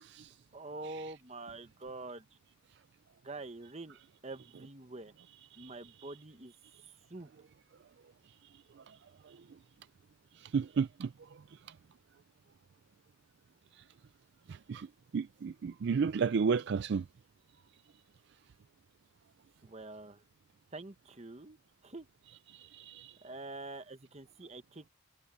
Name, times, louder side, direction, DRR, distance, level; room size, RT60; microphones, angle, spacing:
voice 1, 0.0-0.4 0.9-1.1 5.5-5.7 8.8-9.0 9.2-9.4 10.3-11.1 11.5-11.6 13.8-13.9 14.5-14.9 15.1-17.1 22.5-23.2, right 5 dB, 50° right, 0.3 m, -33 dB
voice 2, 0.5-2.3 3.2-5.1 5.6-6.5 6.8-7.3 19.6-20.2 20.7-21.6 21.8-22.1 23.2-24.9, right 2 dB, 30° right, 1.1 m, -46 dB
head